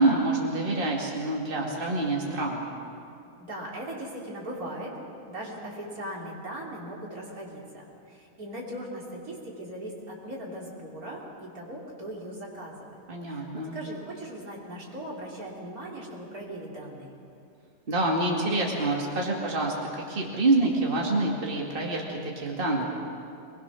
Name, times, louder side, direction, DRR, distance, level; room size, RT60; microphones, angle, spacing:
voice 1, 0.0-2.6 13.1-13.8 17.9-22.8, right 2 dB, 35° right, -1 dB, 2.4 m, -26 dB
voice 2, 3.4-5.0 5.3-12.9 13.3-17.1, right 1 dB, 80° right, -3 dB, 3.9 m, -39 dB
24.0 x 20.5 x 6.3 m, 2.5 s
omnidirectional pair, 1.5 m